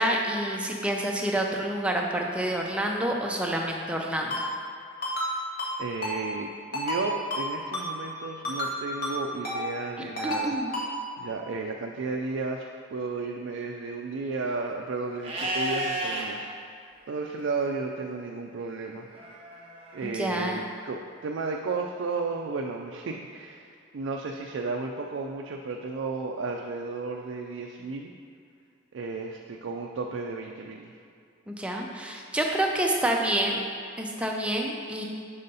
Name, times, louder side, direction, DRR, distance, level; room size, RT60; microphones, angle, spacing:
voice 1, 0.0-4.5 10.2-10.7 20.0-20.6 31.5-33.6 34.0-35.1, right 1 dB, 5° right, 0 dB, 0.5 m, -28 dB
Ringtone, 4.3-4.4 5.0-5.3 5.6-5.7 6.0-6.2 6.7-7.0 7.3-7.4 7.7-7.9 8.4-8.7 9.0-9.1 9.4-9.6 10.2-10.4 10.7-10.9, left 1 dB, 55° left, 1.2 m, -30 dB
voice 2, 5.8-10.5 11.2-12.7 12.9-16.5 17.1-19.1 19.5-23.7 23.9-28.1 28.9-30.9, right 4 dB, 90° right, 2 dB, 0.4 m, -33 dB
Livestock farm animals working animals, 15.2-16.3 19.1-20.1, right 1 dB, 30° right, 0.8 m, -32 dB
5.5 x 4.0 x 5.3 m, 2.4 s
head